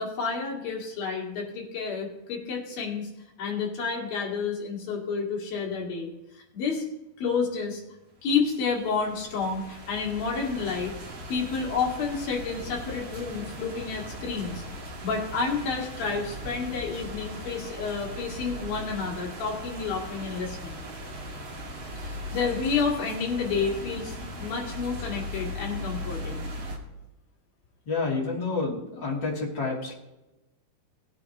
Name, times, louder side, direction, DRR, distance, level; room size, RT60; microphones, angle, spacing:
voice 1, 0.0-3.1 3.4-6.8 7.2-7.8 8.2-10.9 11.3-14.6 15.0-20.8 22.0-26.5, left 5 dB, 65° left, -1 dB, 3.8 m, -30 dB
sound 1, 8.4-26.8, equal, 40° right, 1.9 m, -38 dB
voice 2, 27.9-29.9, left 3 dB, 30° left, -3 dB, 3.1 m, -29 dB
19.5 x 8.7 x 3.0 m, 0.98 s
omnidirectional pair, 4.6 m